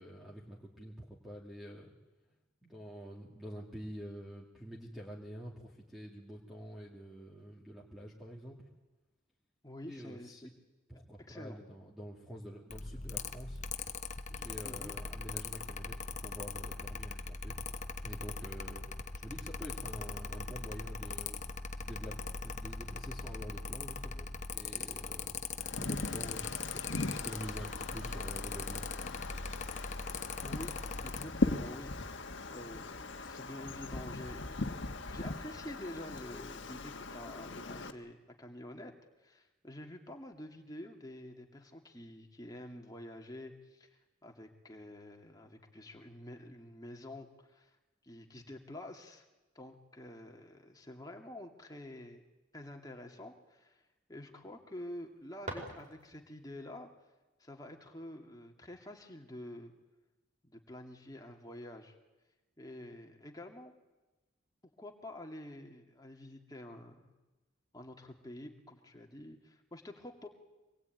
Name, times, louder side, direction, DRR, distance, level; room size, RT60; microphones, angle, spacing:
voice 1, 0.0-1.9 2.6-8.7 9.9-10.5 10.9-13.6 14.3-17.6 18.0-21.5 21.8-28.9, equal, ahead, -4 dB, 2.6 m, -47 dB
voice 2, 9.6-10.5 11.3-11.6 14.6-14.9 30.4-30.7 31.0-34.8 35.1-38.9 39.2-47.8 48.0-49.3 49.5-52.2 52.5-53.8 54.1-56.9 57.4-59.7 60.4-61.9 62.6-63.7 64.8-67.1 67.7-70.3, left 1 dB, 20° left, 2 dB, 2.3 m, -48 dB
Mechanical fan, 12.7-31.2, left 4 dB, 35° left, 1.0 m, -41 dB
Wind, 25.6-37.9, left 2 dB, 60° left, 1.6 m, -39 dB
sound 1, 55.1-56.4, right 1 dB, 40° right, 5.0 m, -45 dB
25.0 x 20.5 x 9.3 m, 1.1 s
head